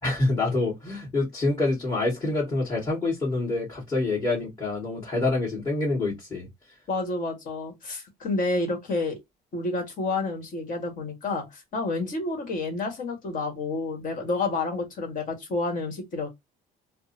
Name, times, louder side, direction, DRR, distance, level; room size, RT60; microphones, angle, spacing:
voice 1, 0.0-6.5, left 2 dB, 25° left, 1.9 m, -26 dB
voice 2, 6.9-9.2 9.5-16.3, left 3 dB, 55° left, 1.4 m, -29 dB
3.6 x 2.1 x 2.8 m
cardioid pair, 110°, 17 cm